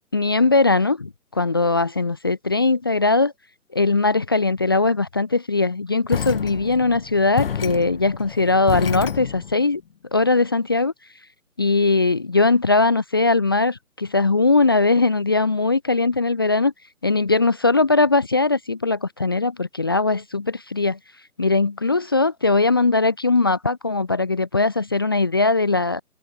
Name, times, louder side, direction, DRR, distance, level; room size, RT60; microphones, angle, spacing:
voice 1, 0.1-3.3 3.7-9.8 10.1-10.9 11.6-16.7 17.0-21.0 21.4-26.0, left 3 dB, 15° left, 0.8 m, -20 dB
sound 1, 6.1-9.6, left 7 dB, 40° left, 5.4 m, -28 dB
figure-of-eight pair, 160°, 45 cm